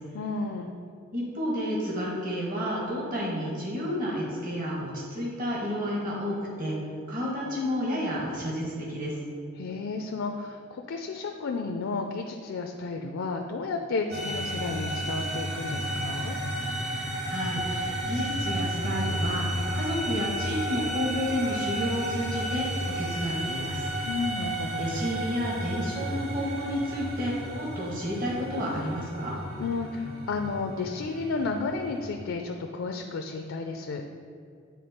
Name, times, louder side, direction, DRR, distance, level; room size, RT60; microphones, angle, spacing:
voice 1, 0.1-0.7 9.5-16.4 24.0-25.1 29.6-34.0, left 4 dB, 65° left, 4 dB, 0.4 m, -32 dB
voice 2, 1.1-6.8 7.1-9.1 17.2-22.7 23.0-23.8 24.8-29.3, equal, 45° right, -5 dB, 1.6 m, -31 dB
sound 1, 14.1-32.1, right 1 dB, 65° right, 1.6 m, -32 dB
8.5 x 3.5 x 4.3 m, 2.3 s
head